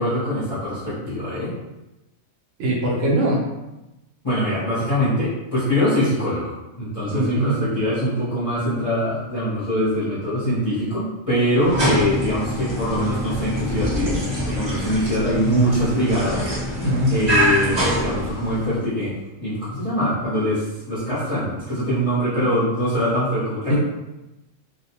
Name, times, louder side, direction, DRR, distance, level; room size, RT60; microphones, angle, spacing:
voice 1, 0.0-1.5 4.2-16.8 17.1-23.7, equal, 30° left, -11 dB, 0.7 m, -23 dB
voice 2, 2.6-3.5 7.1-7.5 16.8-17.1 22.4-22.5 23.7-23.8, equal, 75° right, -3 dB, 1.0 m, -21 dB
sound 1, 11.6-18.8, equal, 30° right, 0.5 m, -25 dB
2.3 x 2.1 x 2.8 m, 0.99 s
omnidirectional pair, 1.4 m